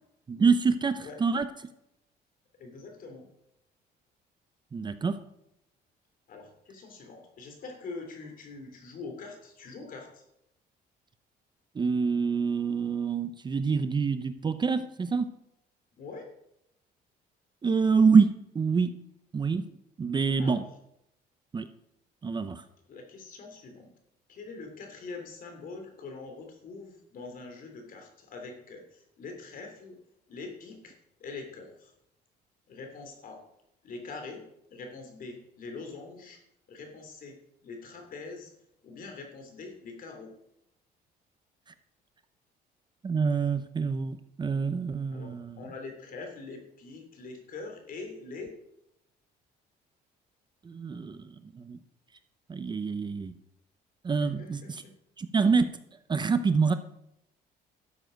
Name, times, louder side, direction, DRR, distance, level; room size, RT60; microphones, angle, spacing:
voice 1, 0.3-1.5 4.7-5.2 11.8-15.3 17.6-18.9 19.3-19.6 20.0-20.6 21.5-21.7 22.2-22.6 43.0-45.6 50.6-51.8 52.5-53.3 54.0-54.6 55.2-55.7 56.1-56.7, right 5 dB, 25° right, 11 dB, 0.7 m, -26 dB
voice 2, 2.6-3.3 6.3-10.2 16.0-16.3 20.4-20.6 22.9-23.9 24.3-30.0 30.3-31.9 32.7-33.4 33.8-34.4 34.7-36.4 36.7-38.5 38.8-40.3 45.1-48.5 54.2-54.9, left 3 dB, 55° left, 4 dB, 3.1 m, -43 dB
12.5 x 7.8 x 5.1 m, 0.80 s
cardioid pair, 110°, 17 cm